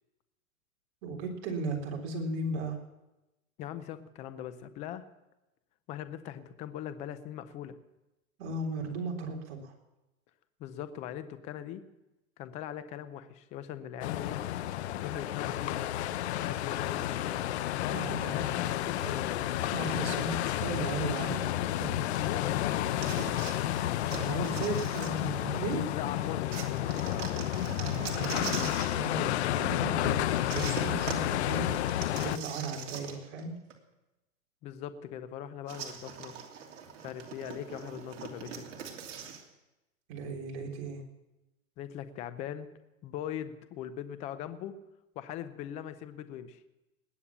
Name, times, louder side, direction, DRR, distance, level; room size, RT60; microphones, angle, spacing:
voice 1, 1.0-2.8 8.4-9.7 17.9-18.6 19.0-19.1 19.7-22.1 24.1-25.9 27.8-30.3 30.5-32.0 32.2-33.6 40.1-41.0, right 3 dB, 40° right, 0 dB, 3.7 m, -36 dB
voice 2, 3.6-5.1 5.9-7.8 10.6-11.8 12.4-14.4 15.0-15.9 16.4-17.5 17.8-19.5 22.2-23.8 24.1-24.6 25.9-27.5 34.6-36.4 37.0-38.6 41.8-42.7 43.0-44.8 45.2-46.6, left 10 dB, 15° left, 13 dB, 0.5 m, -40 dB
sound 1, 14.0-32.4, left 13 dB, 50° left, 0.9 m, -31 dB
sound 2, 23.0-25.7 26.5-29.0 30.5-33.4 33.7-33.8 35.7-39.4, right 7 dB, 60° right, 2.9 m, -42 dB
20.0 x 8.5 x 7.2 m, 0.97 s
hypercardioid pair, 150°, 42 cm